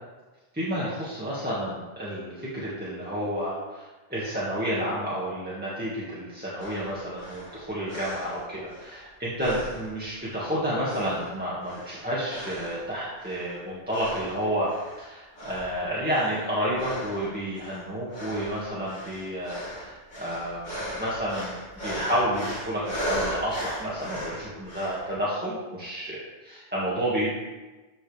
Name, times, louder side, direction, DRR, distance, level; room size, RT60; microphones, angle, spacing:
voice 1, 0.5-14.7 15.0-20.7 21.0-21.6 21.8-26.2 26.4-27.3, equal, 10° right, -9 dB, 2.0 m, -30 dB
sound 1, 6.6-9.0 9.4-10.5 10.8-12.9 13.2-13.6 13.9-15.1 15.3-25.1, equal, 45° left, 2.6 m, -37 dB
14.5 x 5.5 x 3.5 m, 1.2 s
omnidirectional pair, 1.1 m